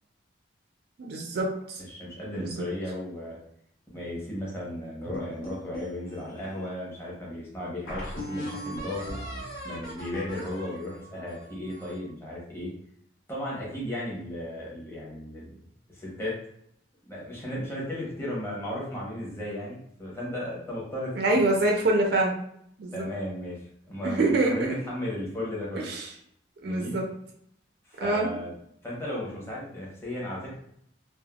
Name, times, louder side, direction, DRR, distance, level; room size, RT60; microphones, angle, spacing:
voice 1, 1.0-1.8 2.4-2.5 21.2-22.3 22.8-23.1 24.0-24.8 25.8-26.1 26.6-27.0 28.0-28.4, right 2 dB, 55° right, 0 dB, 0.4 m, -25 dB
voice 2, 1.9-3.4 3.9-9.2 9.6-12.7 13.3-15.6 15.9-16.4 17.1-21.1 21.6-21.7 22.9-25.9 26.6-27.0 27.8-28.5 28.8-30.6, left 1 dB, 10° left, -6 dB, 0.8 m, -35 dB
sound 1, 5.1-6.7 7.2-7.3 7.9-12.1, equal, 80° left, 0.9 m, -39 dB
3.3 x 2.1 x 2.3 m, 0.70 s
head